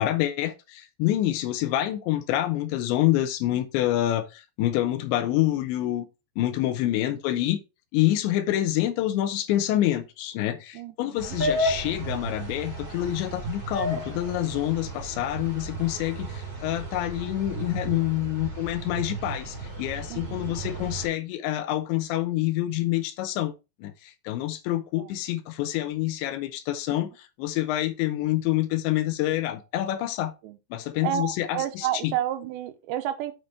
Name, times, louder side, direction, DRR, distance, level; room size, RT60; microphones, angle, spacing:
voice 1, 0.0-6.1 6.4-7.6 7.9-23.5 23.8-27.1 27.4-30.3 30.7-32.1, left 14 dB, 90° left, 3.2 m, -27 dB
voice 2, 10.7-11.4 20.1-20.5 25.0-25.1 27.0-27.1 30.4-30.6 31.0-33.3, right 11 dB, 85° right, 3.1 m, -31 dB
sound 1, 11.2-21.1, right 1 dB, 25° right, 2.8 m, -33 dB
6.7 x 6.1 x 4.4 m
omnidirectional pair, 5.0 m